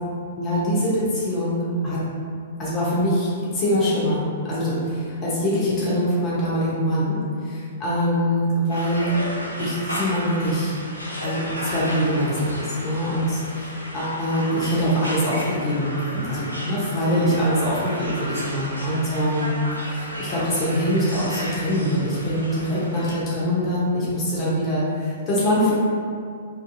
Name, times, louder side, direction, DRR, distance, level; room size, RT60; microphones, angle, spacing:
voice 1, 0.4-2.0 2.6-9.1 9.6-10.7 11.2-19.6 19.9-25.7, equal, 25° left, -8 dB, 0.6 m, -23 dB
sound 1, 8.7-23.1, equal, 90° left, 0.5 m, -33 dB
2.6 x 2.4 x 2.4 m, 2.3 s
figure-of-eight pair, 110°, 0 cm